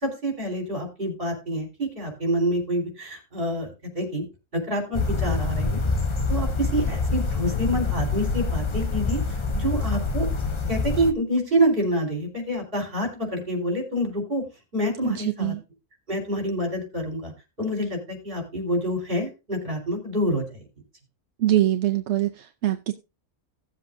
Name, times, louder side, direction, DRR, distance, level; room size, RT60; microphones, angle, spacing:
voice 1, 0.0-4.2 4.5-5.8 6.3-10.3 10.7-14.5 14.7-15.5 16.1-17.3 17.6-20.6, equal, 40° right, 4.0 m, -27 dB
sound 1, 4.9-11.1, left 3 dB, 40° left, 0.4 m, -26 dB
voice 2, 15.0-15.6 21.4-22.9, right 13 dB, 60° right, 0.8 m, -23 dB
17.0 x 7.6 x 2.6 m
omnidirectional pair, 1.5 m